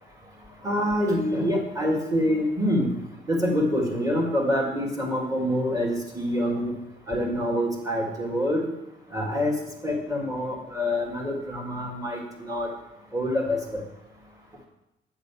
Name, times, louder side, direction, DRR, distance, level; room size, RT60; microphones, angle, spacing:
voice 1, 0.6-2.9 3.3-6.7 7.1-8.6 9.1-9.6 9.8-12.7 13.1-13.8, equal, 15° right, 0 dB, 2.0 m, -26 dB
8.5 x 4.0 x 6.9 m, 0.93 s
cardioid pair, 90°, 20 cm